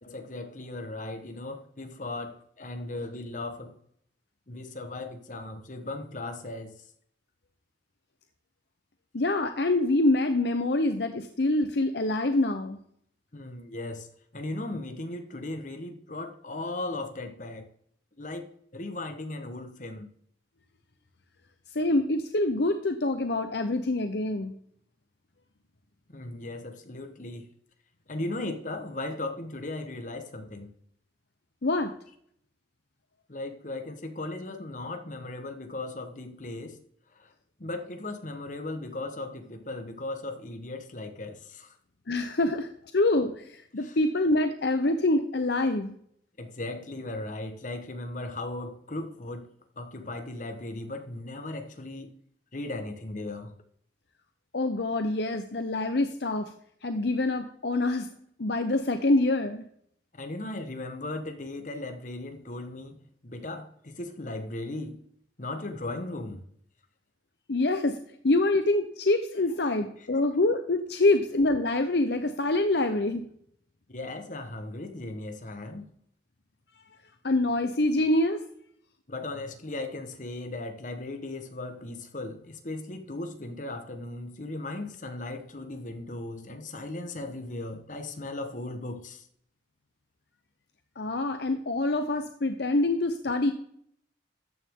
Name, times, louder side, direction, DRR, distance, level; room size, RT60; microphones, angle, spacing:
voice 1, 0.0-3.7 4.5-6.8 13.3-14.1 14.3-17.7 18.2-18.5 18.7-20.1 26.1-27.5 28.1-30.7 33.3-36.8 37.1-37.3 37.6-41.8 43.8-44.0 46.4-49.5 49.8-52.1 52.5-53.5 60.1-65.0 65.4-66.4 73.9-75.9 79.1-89.3, left 2 dB, 40° left, 1.3 m, -37 dB
voice 2, 9.1-12.8 21.7-24.5 31.6-31.9 42.1-45.9 54.5-56.5 56.8-58.1 58.4-59.6 67.5-68.0 68.2-73.3 77.2-78.4 91.0-93.5, left 2 dB, 60° left, 0.8 m, -25 dB
14.0 x 9.2 x 3.7 m
head